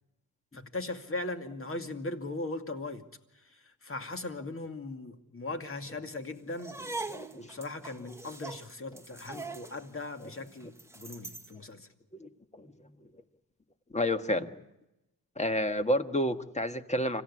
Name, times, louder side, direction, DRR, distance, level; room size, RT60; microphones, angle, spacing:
voice 1, 0.5-3.1 3.3-7.0 7.3-11.9, left 2 dB, 30° left, 6 dB, 2.4 m, -39 dB
sound 1, 6.5-11.6, right 3 dB, 5° right, 1.4 m, -42 dB
voice 2, 12.2-12.7 13.9-14.6 15.4-17.2, left 1 dB, 15° left, 9 dB, 1.5 m, -30 dB
26.0 x 16.0 x 9.8 m, 0.94 s
cardioid pair, 100°, 41 cm